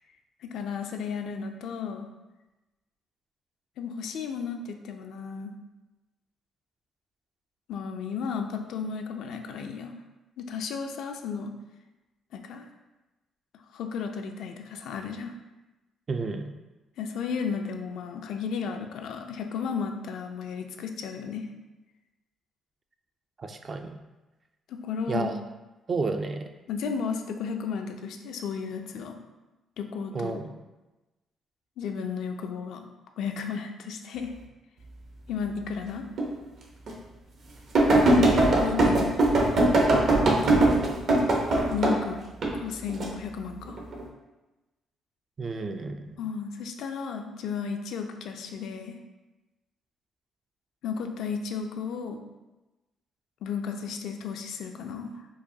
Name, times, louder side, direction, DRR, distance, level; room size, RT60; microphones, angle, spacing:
voice 1, 0.4-2.1 3.8-5.5 7.7-10.0 10.4-11.5 12.3-12.6 13.7-15.3 17.0-21.5 24.7-25.3 26.7-29.1 29.8-30.4 31.8-32.8 33.2-34.3 35.3-36.1 38.6-39.1 41.7-42.2 42.5-43.8 46.2-48.9 50.8-52.2 53.4-55.2, left 6 dB, 80° left, 5 dB, 0.4 m, -33 dB
voice 2, 16.1-16.5 23.4-24.0 25.1-25.4 25.9-26.5 30.1-30.5 45.4-46.2, right 3 dB, 40° right, 6 dB, 0.3 m, -31 dB
sound 1, 36.2-36.3 36.9-37.0 37.7-42.0 42.4-43.0 43.7-44.0, right 2 dB, 65° right, 0.8 m, -20 dB
4.7 x 2.2 x 2.7 m, 1.1 s
cardioid pair, 90°, 0 cm